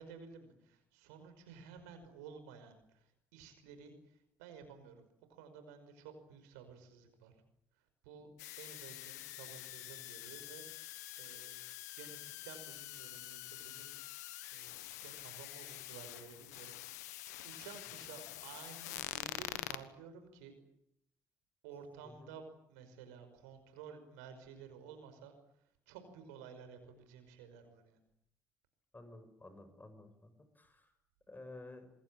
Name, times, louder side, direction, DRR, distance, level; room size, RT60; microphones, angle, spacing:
voice 1, 0.0-7.3 7.8-8.3 8.6-11.6 11.9-14.0 14.5-16.8 17.4-20.5 21.6-28.0, right 6 dB, 85° right, 8 dB, 5.5 m, -54 dB
sound 1, 8.4-19.8, left 16 dB, 85° left, 1.2 m, -46 dB
voice 2, 28.9-30.3 30.5-30.9 31.3-31.9, left 2 dB, 20° left, 8 dB, 6.7 m, -53 dB
27.0 x 21.5 x 8.9 m, 0.74 s
hypercardioid pair, 50°, 9 cm